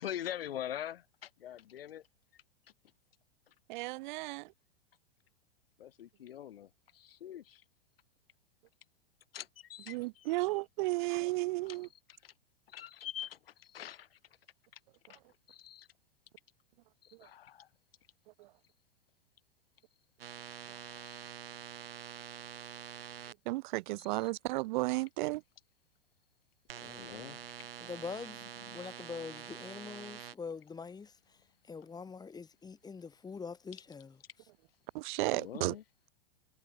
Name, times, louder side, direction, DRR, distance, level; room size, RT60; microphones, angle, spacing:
voice 1, 0.0-2.0 5.8-7.6 9.3-10.4 11.6-11.8 12.2-12.3 12.7-14.2 15.1-15.2 15.5-15.9 17.0-17.7 21.0-21.2 24.0-24.3 26.8-27.7 28.7-28.8 35.3-35.8, left 11 dB, 75° left, 1.4 m, -44 dB
voice 2, 3.7-4.5 9.9-11.9 23.5-25.4 34.9-35.7, right 21 dB, 55° right, 1.2 m, -33 dB
sound 1, 20.2-23.3 26.7-30.3, right 9 dB, 75° right, 3.7 m, -46 dB
voice 3, 27.8-28.4 28.7-31.1 31.7-34.2, left 5 dB, 15° left, 1.8 m, -44 dB
hypercardioid pair, 105°, 30 cm